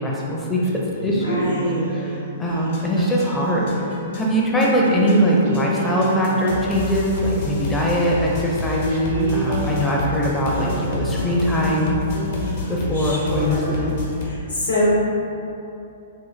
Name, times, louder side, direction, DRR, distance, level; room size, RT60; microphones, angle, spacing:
voice 1, 0.0-1.4 2.4-12.0 12.7-13.9, equal, 15° left, -4 dB, 0.5 m, -21 dB
sound 1, 0.6-3.9 4.8-7.7 8.9-14.1, right 2 dB, 65° right, 0.5 m, -29 dB
voice 2, 1.2-1.8 12.9-13.8 14.2-14.8, left 1 dB, 85° left, -7 dB, 1.2 m, -26 dB
sound 2, 2.4-14.2, left 3 dB, 60° left, 0.7 m, -30 dB
3.8 x 2.4 x 3.2 m, 2.8 s
hypercardioid pair, 120°, 0 cm